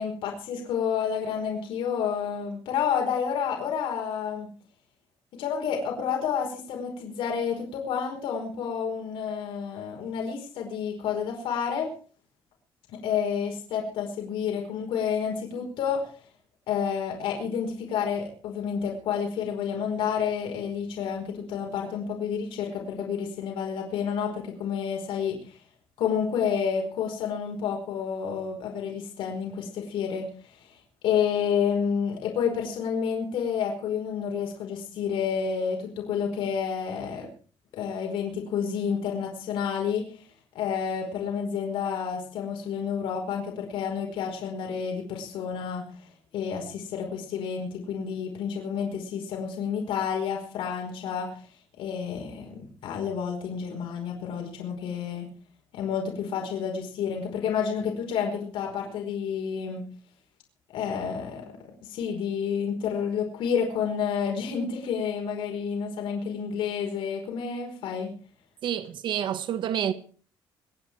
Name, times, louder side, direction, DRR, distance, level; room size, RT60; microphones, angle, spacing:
voice 1, 0.0-4.5 5.3-11.9 12.9-16.1 16.7-25.6 26.0-30.7 31.0-37.3 37.7-40.1 40.5-51.3 51.8-55.3 55.7-59.8 60.7-61.5 61.8-68.1, left 7 dB, 75° left, 4.9 m, -30 dB
voice 2, 68.6-69.9, right 10 dB, 60° right, 1.3 m, -28 dB
26.0 x 9.6 x 4.7 m
cardioid pair, 130°, 9 cm